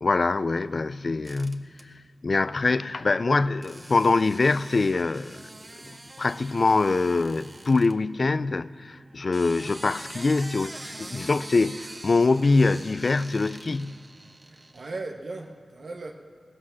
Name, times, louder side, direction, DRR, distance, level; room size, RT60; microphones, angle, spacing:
voice 1, 0.0-1.8 2.2-5.4 5.8-13.9, left 3 dB, 60° left, 0.4 m, -24 dB
sound 1, 1.2-1.8 3.6-7.9 9.1-15.0, right 2 dB, 40° right, 1.1 m, -44 dB
voice 2, 14.4-16.1, right 3 dB, 70° right, 1.1 m, -37 dB
17.0 x 11.0 x 7.3 m
cardioid pair, 50°, 0 cm